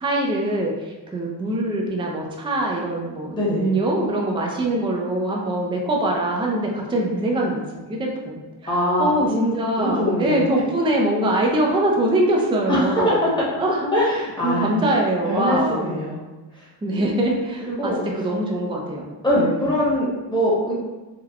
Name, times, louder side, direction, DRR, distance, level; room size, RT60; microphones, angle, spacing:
voice 1, 0.0-13.3 13.6-13.9 14.4-15.9 16.8-19.1 19.4-19.7, right 1 dB, 10° right, -1 dB, 0.4 m, -23 dB
voice 2, 3.4-3.7 8.7-9.5 9.8-10.5 12.7-13.3 13.9-14.7 15.3-16.2 17.6-18.0 19.2-20.7, left 1 dB, 10° left, -7 dB, 1.0 m, -22 dB
3.4 x 2.2 x 2.3 m, 1.1 s
cardioid pair, 85°, 44 cm